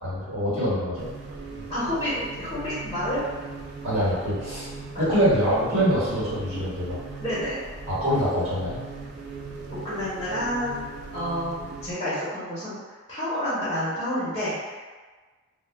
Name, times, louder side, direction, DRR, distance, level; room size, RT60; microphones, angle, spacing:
voice 1, 0.0-1.1 2.1-2.2 3.8-4.7 5.0-7.0 7.9-8.7, equal, 85° right, -9 dB, 1.3 m, -24 dB
sound 1, 1.0-11.9, right 4 dB, 50° right, 0.3 m, -39 dB
voice 2, 1.7-3.2 4.9-5.1 7.2-7.6 9.7-10.8 11.1-12.8 13.1-14.8, equal, 20° left, -11 dB, 0.6 m, -29 dB
2.1 x 2.1 x 3.2 m, 1.4 s
head